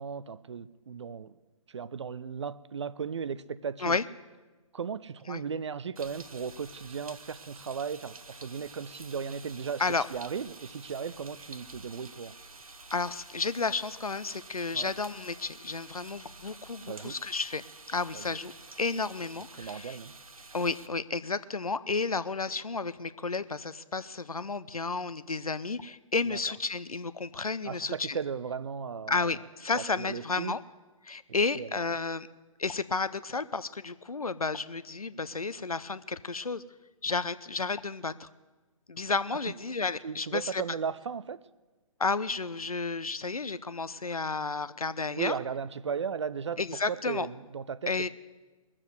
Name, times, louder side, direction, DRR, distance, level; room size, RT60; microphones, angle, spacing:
voice 1, 0.0-1.4 1.7-4.0 4.7-9.8 10.1-12.3 14.7-14.9 16.9-17.2 18.1-18.4 19.5-20.2 26.3-26.4 27.7-29.4 29.7-30.5 31.3-31.8 40.0-41.4 45.2-48.1, right 6 dB, 55° right, 19 dB, 0.5 m, -36 dB
sound 1, 6.0-20.9, right 3 dB, 75° right, 1.1 m, -49 dB
voice 2, 12.9-17.6 17.9-18.5 18.8-20.0 20.5-28.2 29.1-30.6 31.0-32.3 32.6-36.6 37.0-38.3 38.9-40.6 42.0-45.3 46.6-47.3 47.9-48.1, left 4 dB, 80° left, 15 dB, 0.7 m, -32 dB
20.5 x 7.4 x 7.9 m, 1.2 s
figure-of-eight pair, 135°, 18 cm